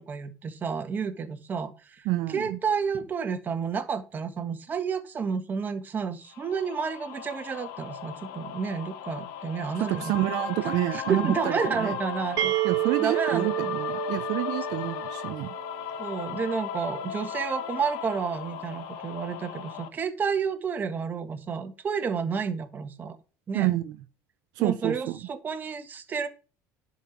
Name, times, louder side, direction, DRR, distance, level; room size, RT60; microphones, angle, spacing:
voice 1, 0.0-2.1 2.3-10.1 10.9-12.5 13.0-13.8 16.0-23.2 23.5-23.7 24.6-26.3, right 6 dB, 25° right, 1.5 m, -30 dB
voice 2, 2.1-2.6 9.8-12.0 12.6-15.5 23.5-24.0 24.5-25.2, right 16 dB, 70° right, 0.6 m, -28 dB
sound 1, 6.3-19.9, left 8 dB, 90° left, 1.4 m, -36 dB
sound 2, 12.4-16.1, right 16 dB, 50° right, 1.0 m, -30 dB
11.0 x 5.7 x 5.9 m
cardioid pair, 150°, 7 cm